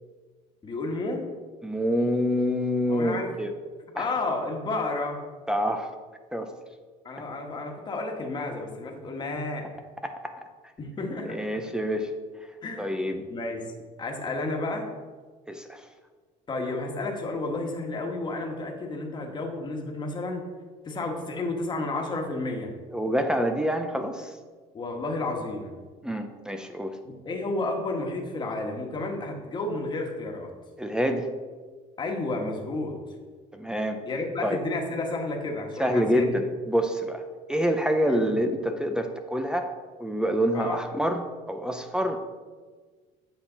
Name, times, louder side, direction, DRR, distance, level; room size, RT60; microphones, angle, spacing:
voice 1, 0.6-1.2 2.9-3.3 3.9-5.2 7.0-9.6 10.8-11.4 12.6-12.8 13.1-13.7 14.0-14.9 16.5-20.4 20.8-22.7 24.7-25.7 27.0-30.5 32.0-33.0 34.1-36.3 38.0-38.3 40.5-40.8, left 2 dB, 30° left, 1 dB, 1.5 m, -31 dB
voice 2, 1.6-3.5 4.0-4.1 5.5-5.9 6.3-6.5 10.0-10.3 11.3-12.1 12.8-13.2 15.5-15.8 22.9-24.3 26.0-27.0 30.8-31.2 33.5-34.0 34.4-34.6 35.8-37.2 37.5-39.7 40.0-42.2, equal, 5° right, 6 dB, 0.6 m, -26 dB
8.5 x 5.8 x 3.9 m, 1.5 s
cardioid pair, 115°, 15 cm